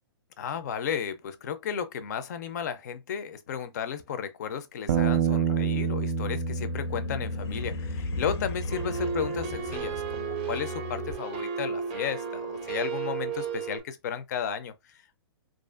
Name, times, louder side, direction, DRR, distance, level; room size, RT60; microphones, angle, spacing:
voice 1, 0.4-15.2, left 7 dB, 45° left, 0.4 m, -34 dB
Bass guitar, 4.9-11.1, right 5 dB, 80° right, 0.4 m, -30 dB
sound 1, 6.3-10.5, left 3 dB, 85° left, 0.6 m, -38 dB
sound 2, 8.7-13.8, right 6 dB, 25° right, 0.5 m, -33 dB
2.4 x 2.4 x 2.3 m
hypercardioid pair, 170°, 13 cm